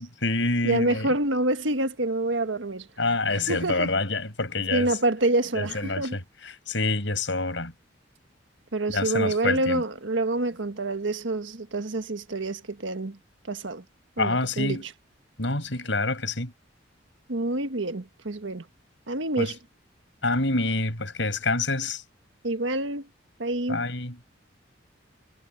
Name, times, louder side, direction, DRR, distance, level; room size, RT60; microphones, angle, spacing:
voice 1, 0.0-1.1 3.0-4.9 5.5-7.7 8.9-9.8 14.2-14.8 15.4-16.5 19.4-19.5 20.2-22.0 23.7-24.2, left 3 dB, 70° left, 6.3 m, -27 dB
voice 2, 0.6-2.9 3.3-3.9 4.7-6.2 8.7-13.2 13.5-13.8 14.2-14.9 17.3-18.6 19.1-19.6 22.4-23.1 23.4-23.8, right 2 dB, 75° right, 1.5 m, -27 dB
head